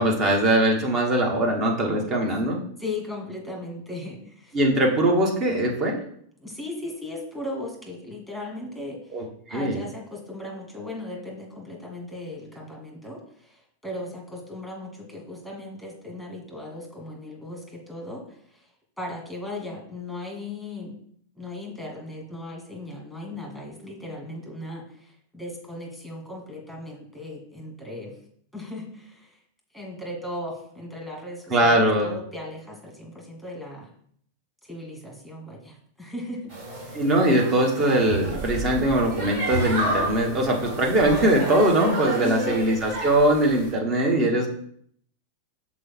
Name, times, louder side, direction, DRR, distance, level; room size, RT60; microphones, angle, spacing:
voice 1, 0.0-2.6 4.5-6.0 9.1-9.8 31.5-32.1 36.9-44.5, right 1 dB, 30° right, 1 dB, 1.5 m, -21 dB
voice 2, 2.8-4.6 6.4-9.2 9.5-18.7 19.0-20.9 21.4-28.1 28.5-29.4 29.7-33.9 34.6-36.5 36.9-37.1 42.2-42.6, left 1 dB, ahead, -1 dB, 2.1 m, -37 dB
sound 1, 36.5-43.7, right 1 dB, 50° right, 2.0 m, -31 dB
6.1 x 4.3 x 4.4 m, 0.63 s
figure-of-eight pair, 90°, 0 cm